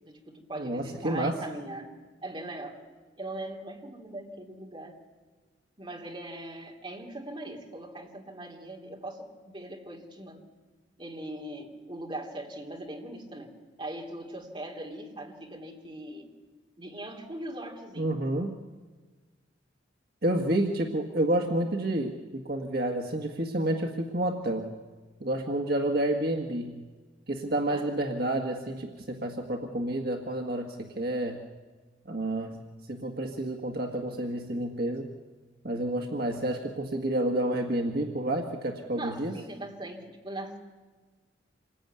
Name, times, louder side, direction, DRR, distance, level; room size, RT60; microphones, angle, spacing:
voice 1, 0.0-1.9 2.2-2.8 3.2-5.0 5.8-10.4 11.0-16.3 16.8-18.1 27.7-28.1 38.9-40.6, right 1 dB, 25° right, 0 dB, 3.2 m, -40 dB
voice 2, 0.6-1.4 18.0-18.5 20.2-24.7 25.2-26.8 27.3-31.4 32.1-32.6 32.9-35.1 35.6-39.4, right 1 dB, 55° right, 2 dB, 1.7 m, -29 dB
27.0 x 20.5 x 9.6 m, 1.4 s
head